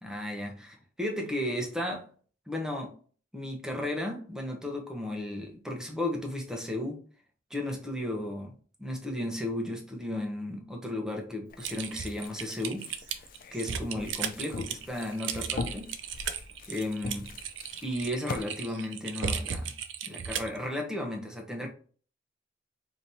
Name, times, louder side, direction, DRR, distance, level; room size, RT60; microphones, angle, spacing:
voice 1, 0.0-2.1 2.5-2.9 3.3-7.0 7.5-8.5 8.8-12.9 13.5-15.9 16.7-17.3 17.8-19.7 20.0-21.7, left 1 dB, 5° right, 0.9 m, -34 dB
sound 1, 11.5-18.4, left 3 dB, 50° left, 0.4 m, -42 dB
Typing, 11.6-20.6, right 7 dB, 90° right, 0.5 m, -35 dB
5.1 x 2.9 x 2.7 m
head